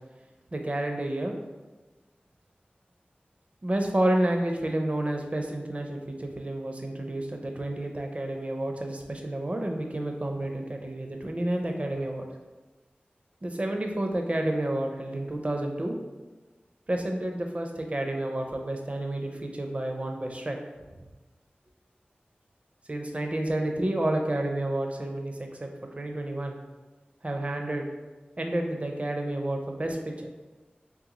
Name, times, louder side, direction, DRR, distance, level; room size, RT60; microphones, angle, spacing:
voice 1, 0.5-1.3 3.6-12.2 13.4-16.0 16.9-20.6 22.9-25.7 26.0-26.6 27.2-27.9 28.4-30.3, right 1 dB, 40° right, 3 dB, 0.6 m, -30 dB
3.7 x 3.4 x 3.0 m, 1.2 s
wide cardioid pair, 45°, 4 cm